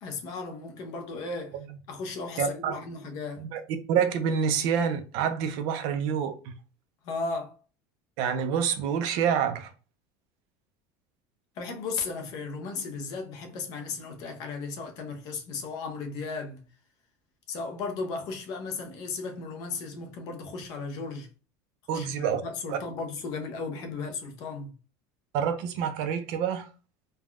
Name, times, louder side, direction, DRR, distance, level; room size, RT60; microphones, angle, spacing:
voice 1, 0.0-1.6 1.9-3.4 7.0-7.5 11.6-16.6 17.5-21.3 21.9-24.7, left 4 dB, 45° left, 0.7 m, -35 dB
voice 2, 2.4-2.8 3.4-3.6 3.9-6.5 8.2-9.7 21.9-22.4 22.7-22.8 25.3-26.7, right 7 dB, 50° right, 0.4 m, -27 dB
3.3 x 2.2 x 2.4 m
cardioid pair, 170°, 9 cm